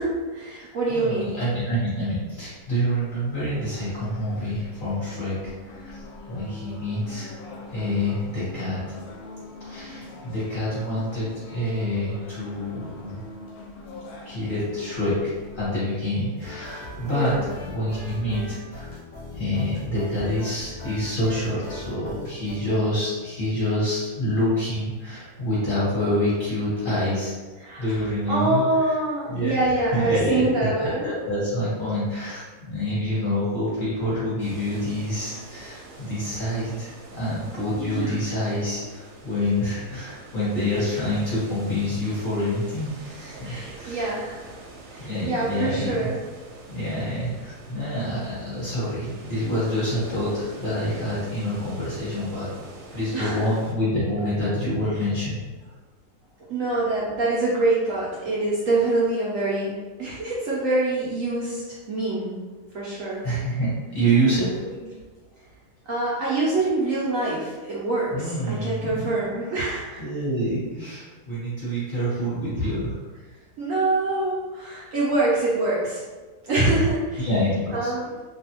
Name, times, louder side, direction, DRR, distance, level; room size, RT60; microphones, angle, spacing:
voice 1, 0.0-1.4 17.0-17.5 27.6-31.1 37.7-38.2 43.4-44.4 44.9-46.2 53.1-53.4 56.5-62.4 62.7-63.3 65.9-70.0 73.6-76.0 76.4-77.3 77.7-78.1, right 2 dB, 65° right, -7 dB, 0.9 m, -25 dB
voice 2, 0.9-5.4 5.7-6.0 6.3-7.4 7.7-8.8 9.6-13.2 14.2-18.9 19.3-27.3 27.8-29.0 29.3-44.1 45.0-46.1 46.7-52.5 52.9-55.4 63.2-64.6 68.1-69.1 70.0-73.0 77.2-77.9, equal, 35° left, -10 dB, 1.0 m, -27 dB
sound 1, 2.6-15.7, left 2 dB, 75° left, 1.0 m, -43 dB
sound 2, 16.4-22.6, left 1 dB, 55° left, 0.4 m, -39 dB
sound 3, 34.4-53.7, right 2 dB, 90° right, 1.2 m, -45 dB
2.7 x 2.4 x 2.8 m, 1.3 s
omnidirectional pair, 1.7 m